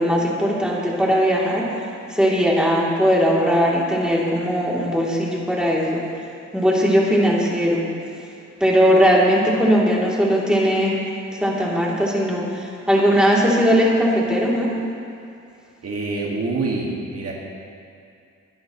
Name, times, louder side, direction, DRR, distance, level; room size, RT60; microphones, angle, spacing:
voice 1, 0.0-1.7 2.1-6.1 6.5-7.8 8.6-11.0 11.4-14.7, equal, 5° right, -5 dB, 2.8 m, -19 dB
voice 2, 15.8-17.3, right 3 dB, 55° right, -3 dB, 1.8 m, -26 dB
22.0 x 10.5 x 3.0 m, 2.5 s
cardioid pair, 100°, 30 cm